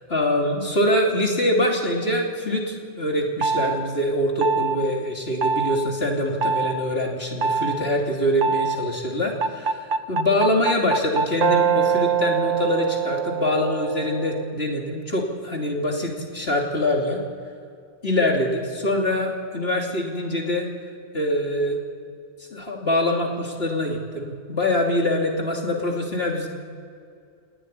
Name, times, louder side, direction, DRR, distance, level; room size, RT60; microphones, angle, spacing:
voice 1, 0.1-17.2 18.0-20.7 21.1-21.8 22.5-26.5, left 1 dB, 55° left, 0 dB, 3.4 m, -24 dB
sound 1, 3.4-3.8 4.4-4.8 5.4-5.8 6.4-6.7 7.4-7.8 8.4-8.8 9.4-14.5, right 6 dB, 85° right, 1.3 m, -23 dB
27.5 x 19.0 x 10.0 m, 2.3 s
omnidirectional pair, 1.3 m